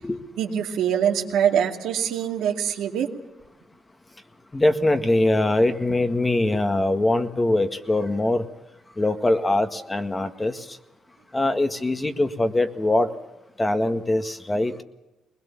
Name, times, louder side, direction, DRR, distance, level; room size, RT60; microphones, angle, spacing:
voice 1, 0.3-3.1, right 9 dB, 85° right, 2 dB, 2.4 m, -24 dB
voice 2, 4.5-8.5 9.0-10.8 11.3-13.1 13.6-14.7, left 2 dB, 20° left, 8 dB, 1.7 m, -22 dB
21.0 x 20.5 x 7.3 m, 0.97 s
cardioid pair, 90°, 0 cm